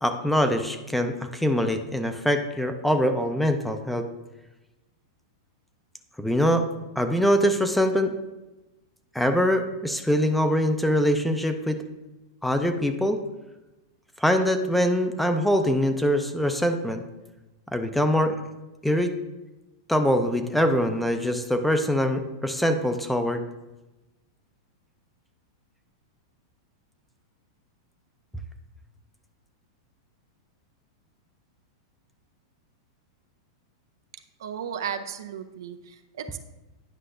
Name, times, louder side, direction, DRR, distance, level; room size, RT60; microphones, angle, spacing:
voice 1, 0.0-4.1 6.2-6.6 7.0-8.2 9.1-11.8 12.4-13.2 14.2-17.0 17.7-18.3 18.8-19.1 19.9-23.4, equal, 5° left, 7 dB, 0.5 m, -23 dB
voice 2, 34.4-36.4, right 8 dB, 75° right, 7 dB, 0.5 m, -35 dB
9.8 x 5.5 x 2.5 m, 1.1 s
hypercardioid pair, 120°, 2 cm